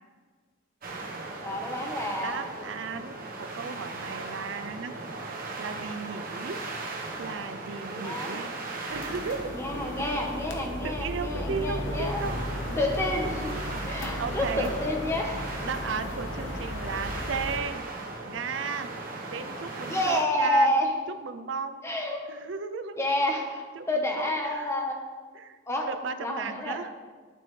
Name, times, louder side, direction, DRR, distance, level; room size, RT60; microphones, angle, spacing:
sound 1, 0.8-20.2, right 3 dB, 50° right, 1.2 m, -38 dB
voice 1, 1.4-2.4 7.9-8.4 9.5-12.2 12.8-13.5 13.9-15.4 19.9-20.9 21.8-22.2 23.0-25.0 25.7-25.9 26.2-26.8, left 1 dB, 15° left, 1 dB, 1.2 m, -29 dB
voice 2, 2.2-4.9 5.6-6.6 7.2-8.5 8.9-9.4 10.0-10.2 10.8-12.4 14.2-14.7 15.6-17.8 18.3-18.9 19.3-20.7 21.2-21.8 22.3-23.0 23.8-24.7 25.3-25.6 25.9-26.9, right 5 dB, 70° right, 10 dB, 0.5 m, -35 dB
sound 2, 8.9-17.6, left 1 dB, 70° left, 1.2 m, -35 dB
12.0 x 7.6 x 3.3 m, 1.5 s
head